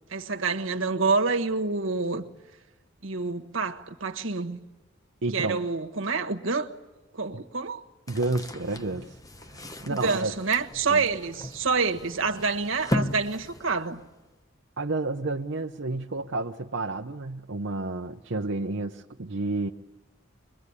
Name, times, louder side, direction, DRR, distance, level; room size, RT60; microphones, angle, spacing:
voice 1, 0.1-2.2 3.0-4.6 5.3-6.7 7.1-7.8 9.9-14.0, right 4 dB, 85° right, 1.5 m, -27 dB
voice 2, 5.2-5.6 7.3-7.4 8.1-9.1 9.5-10.3 10.9-11.1 14.8-19.7, right 2 dB, 65° right, 0.8 m, -30 dB
sound 1, 8.1-14.3, left 1 dB, 20° left, 0.9 m, -36 dB
24.0 x 22.5 x 9.8 m
head